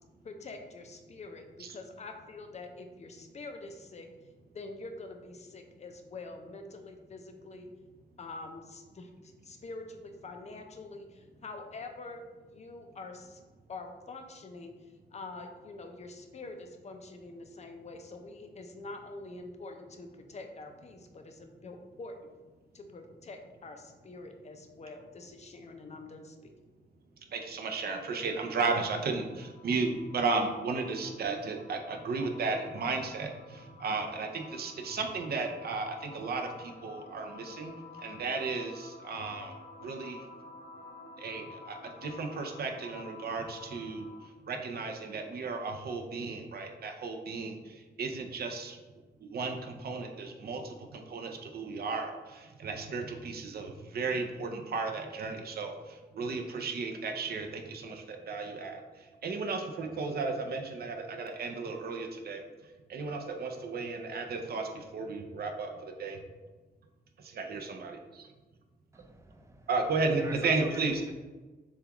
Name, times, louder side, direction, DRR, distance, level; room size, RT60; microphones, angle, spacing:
voice 1, 0.2-4.1 4.5-7.7 8.2-12.2 12.5-13.4 13.7-22.2 22.7-26.5, left 3 dB, 40° left, 5 dB, 0.5 m, -45 dB
voice 2, 27.3-37.7 38.0-40.2 41.2-44.0 44.5-48.8 49.2-58.8 59.2-62.4 62.9-66.2 67.2-68.3 69.7-71.0, right 4 dB, 60° right, 4 dB, 0.6 m, -34 dB
sound 1, 28.0-44.4, left 4 dB, 85° left, 0.6 m, -51 dB
voice 3, 68.9-69.7 70.2-71.1, right 1 dB, 15° right, 4 dB, 0.4 m, -42 dB
7.0 x 2.3 x 2.9 m, 1.3 s
wide cardioid pair, 165°, 18 cm